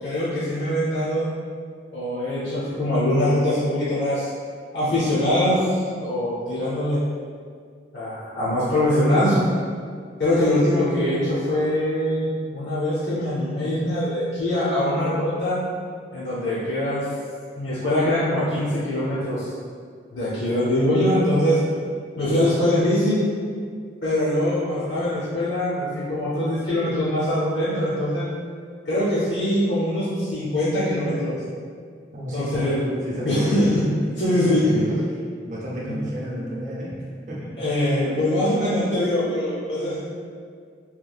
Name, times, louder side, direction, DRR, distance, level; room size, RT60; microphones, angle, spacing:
voice 1, 0.0-1.3 1.9-4.3 4.7-7.0 7.9-9.4 10.2-15.6 16.1-17.0 17.6-19.5 20.1-21.6 22.2-23.2 24.0-28.3 28.9-31.3 32.3-32.8 33.2-33.8 34.2-34.7 35.9-36.0 37.6-40.0, left 1 dB, 70° left, -10 dB, 0.6 m, -23 dB
voice 2, 32.1-32.7 33.1-33.6 34.2-35.0 35.4-37.0 37.3-37.6, equal, 40° right, -6 dB, 0.6 m, -32 dB
3.0 x 2.3 x 2.4 m, 2.1 s
head